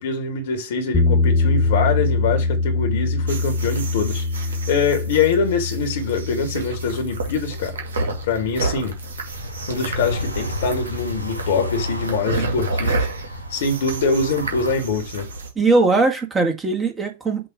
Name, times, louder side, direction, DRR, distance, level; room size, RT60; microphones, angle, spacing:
voice 1, 0.0-7.8 8.2-9.0 9.7-13.1 13.5-15.3, left 4 dB, 55° left, 1.9 m, -24 dB
sound 1, 0.9-11.0, left 3 dB, 15° left, 1.5 m, -24 dB
sound 2, 3.3-15.5, right 3 dB, 65° right, 2.2 m, -31 dB
sound 3, 9.3-14.7, left 1 dB, 85° right, 1.6 m, -31 dB
voice 2, 15.6-17.5, right 3 dB, 15° right, 1.8 m, -19 dB
7.8 x 3.0 x 4.9 m
figure-of-eight pair, 90°, 0 cm